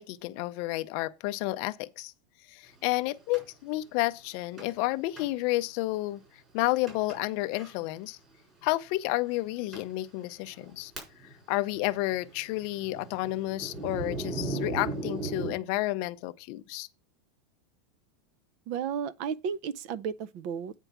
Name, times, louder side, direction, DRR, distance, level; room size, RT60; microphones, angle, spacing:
voice 1, 0.0-2.1 2.5-6.2 6.5-8.2 8.6-10.9 11.5-16.9, left 18 dB, 40° left, 0.5 m, -31 dB
Thunder, 3.3-3.4 4.6-4.9 5.2-5.3 5.9-6.0 6.9-7.2 7.5-7.7 8.6-8.7 9.3-9.4 9.7-9.9 10.4-11.4 11.7-15.5, right 2 dB, 20° right, 4.4 m, -37 dB
voice 2, 18.7-20.7, right 7 dB, 40° right, 0.4 m, -33 dB
9.1 x 4.5 x 5.9 m
supercardioid pair, 175°, 0 cm